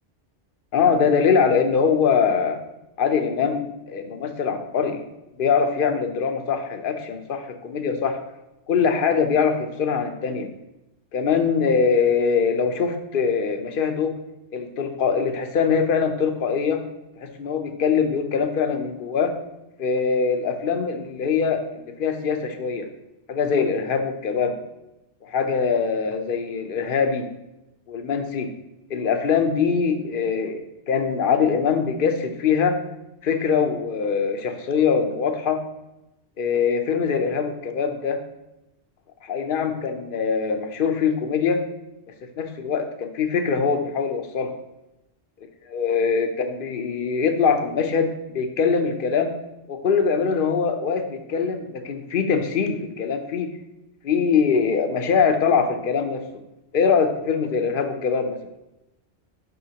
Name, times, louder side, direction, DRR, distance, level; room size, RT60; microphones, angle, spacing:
voice 1, 0.7-2.6 3.0-5.0 5.4-8.2 8.7-10.5 11.1-14.1 14.5-16.8 17.2-19.3 19.8-22.9 23.3-24.6 25.2-27.3 27.9-28.5 28.9-32.7 33.2-35.6 36.4-38.2 39.2-41.6 42.4-44.5 45.7-49.3 49.7-53.5 54.0-56.2 56.7-58.4, left 6 dB, 55° left, 6 dB, 0.8 m, -22 dB
6.4 x 5.7 x 2.8 m, 0.92 s
omnidirectional pair, 1.2 m